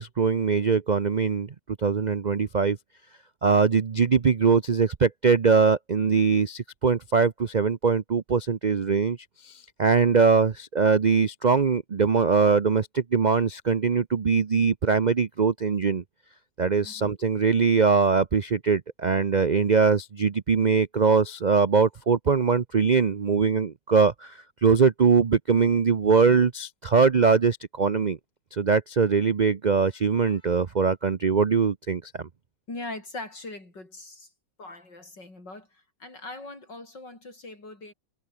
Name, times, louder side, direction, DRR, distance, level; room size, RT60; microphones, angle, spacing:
voice 1, 0.0-1.5 1.8-2.8 3.4-9.2 9.4-16.0 16.6-24.3 24.6-28.2 28.5-32.3, right 5 dB, 60° right, 0.4 m, -22 dB
voice 2, 16.8-17.1 32.7-34.3 34.6-37.9, left 2 dB, 75° left, 7.8 m, -41 dB
omnidirectional pair, 1.9 m